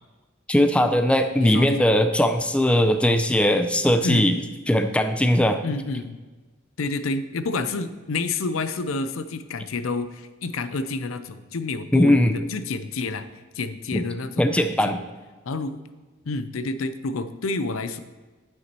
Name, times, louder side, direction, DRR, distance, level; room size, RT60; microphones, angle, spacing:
voice 1, 0.5-4.4 4.7-5.6 11.9-12.4 13.9-14.0 14.4-15.0, left 1 dB, 5° left, 8 dB, 0.4 m, -20 dB
voice 2, 1.4-1.8 4.0-4.2 5.6-6.2 6.8-13.3 13.5-15.0 15.5-15.8 16.2-18.0, left 3 dB, 80° left, 11 dB, 0.6 m, -29 dB
9.6 x 8.2 x 3.0 m, 1.3 s
head